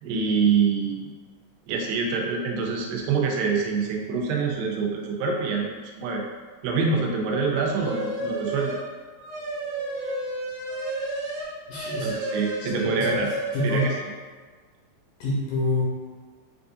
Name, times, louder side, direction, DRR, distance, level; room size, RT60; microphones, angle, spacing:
voice 1, 0.0-1.1 1.7-5.7 6.0-6.2 6.6-8.8 12.0-13.3 13.6-13.9, right 5 dB, 85° right, 0 dB, 2.4 m, -25 dB
sound 1, 7.8-8.9 9.2-14.0, right 2 dB, 70° right, 1.9 m, -31 dB
voice 2, 11.7-12.2 12.6-13.2 13.5-13.9 15.2-15.8, left 1 dB, 75° left, -5 dB, 2.2 m, -27 dB
6.8 x 2.4 x 2.6 m, 1.5 s
omnidirectional pair, 4.1 m